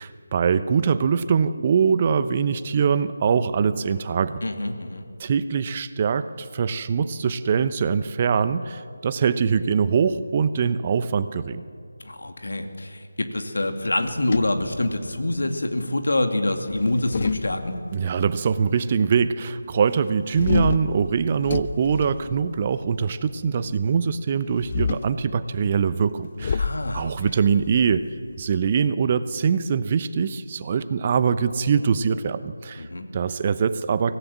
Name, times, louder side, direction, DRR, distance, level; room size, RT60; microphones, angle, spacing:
voice 1, 0.0-4.4 5.2-11.6 17.9-26.7 26.9-28.0 28.4-32.9 33.1-34.1, right 6 dB, 30° right, 13 dB, 0.8 m, -23 dB
voice 2, 4.4-5.0 12.0-17.7 26.6-27.3 32.8-33.3, left 1 dB, 65° left, 5 dB, 2.5 m, -26 dB
sound 1, 14.0-15.4 16.7-18.1 20.3-22.9 24.5-25.2 26.4-28.7, left 5 dB, 35° left, 0.5 m, -29 dB
24.0 x 17.0 x 7.3 m, 2.3 s
figure-of-eight pair, 160°, 0 cm